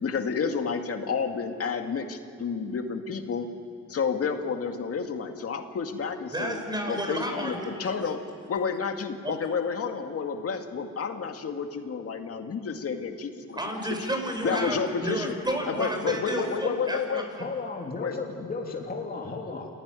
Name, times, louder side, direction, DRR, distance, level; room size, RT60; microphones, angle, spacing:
voice 1, 0.0-3.5 3.9-6.6 6.9-8.2 8.5-13.6 14.4-15.3 15.7-17.2 18.0-18.2, left 5 dB, 50° left, 5 dB, 2.1 m, -30 dB
voice 2, 6.3-7.7 9.2-9.3 13.5-17.5, right 1 dB, 15° right, 3 dB, 5.8 m, -31 dB
voice 3, 17.4-19.7, left 3 dB, 30° left, 0 dB, 3.1 m, -34 dB
28.5 x 16.0 x 9.8 m, 2.4 s
cardioid pair, 90°, 30 cm